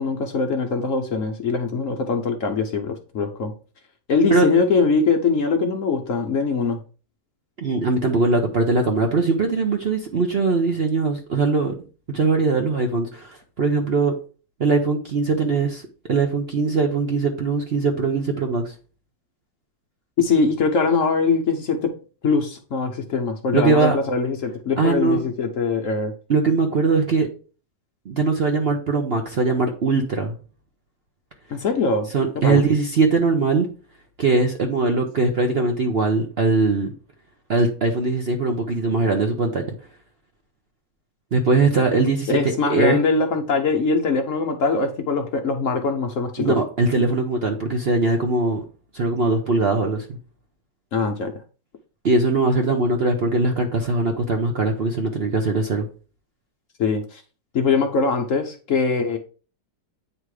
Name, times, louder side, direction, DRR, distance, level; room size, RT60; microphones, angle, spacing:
voice 1, 0.0-3.5 4.1-6.8 20.2-21.9 22.2-26.1 31.5-32.1 32.4-32.6 42.3-46.5 50.9-51.3 56.8-57.2 57.5-59.2, left 4 dB, 60° left, 1.0 m, -22 dB
voice 2, 7.6-11.7 12.1-14.1 14.6-15.8 16.1-18.7 23.5-24.0 24.8-25.2 26.3-27.3 28.1-30.3 32.1-33.7 34.2-36.9 37.5-39.6 41.3-43.0 46.4-48.6 48.9-50.2 52.0-55.9, right 3 dB, 50° right, 0.8 m, -21 dB
8.8 x 3.0 x 4.8 m
omnidirectional pair, 1.8 m